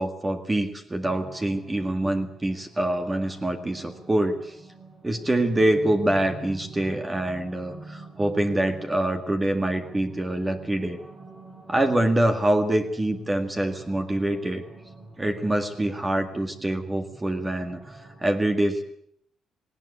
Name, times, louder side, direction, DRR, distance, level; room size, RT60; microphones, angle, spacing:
voice 1, 0.0-4.5 5.0-11.0 11.7-14.6 15.2-17.9 18.2-18.8, right 1 dB, 20° right, 6 dB, 1.9 m, -25 dB
sound 1, 1.0-18.2, right 2 dB, 40° right, 6.3 m, -46 dB
18.5 x 18.0 x 8.4 m, 0.71 s
cardioid pair, 90°, 0 cm